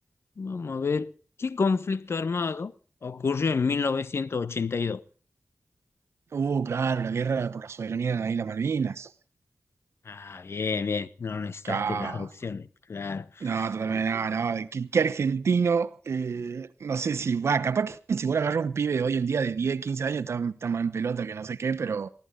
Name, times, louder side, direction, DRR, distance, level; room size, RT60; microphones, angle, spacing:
voice 1, 0.4-1.1 1.4-2.7 3.0-5.0 10.0-14.0, left 5 dB, 70° left, 1.0 m, -29 dB
voice 2, 6.3-9.1 11.6-12.2 13.4-22.1, right 6 dB, 90° right, 0.9 m, -27 dB
23.5 x 16.0 x 3.8 m
wide cardioid pair, 60°, 5 cm